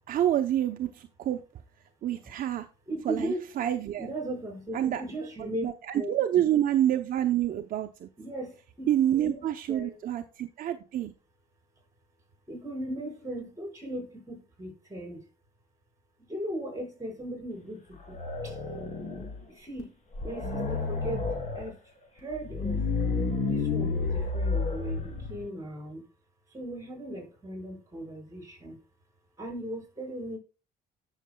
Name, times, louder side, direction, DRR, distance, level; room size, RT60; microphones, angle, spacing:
voice 1, 0.1-1.4 2.0-2.7 3.0-4.1 4.7-5.0 5.4-8.1 8.9-11.1, right 11 dB, 55° right, 0.7 m, -28 dB
voice 2, 2.9-3.4 4.0-5.7 5.9-6.1 8.2-8.9 9.1-10.0 12.5-15.2 16.3-18.2 18.4-18.6 19.5-19.9 20.2-21.3 21.6-21.8 22.1-22.8 23.4-26.1 26.5-28.8 29.4-30.4, right 1 dB, 20° right, 5.4 m, -37 dB
sound 1, 17.9-19.4 19.8-19.9 20.1-21.7 22.3-25.5, left 4 dB, 45° left, 3.1 m, -30 dB
18.0 x 6.5 x 2.3 m
cardioid pair, 110°, 17 cm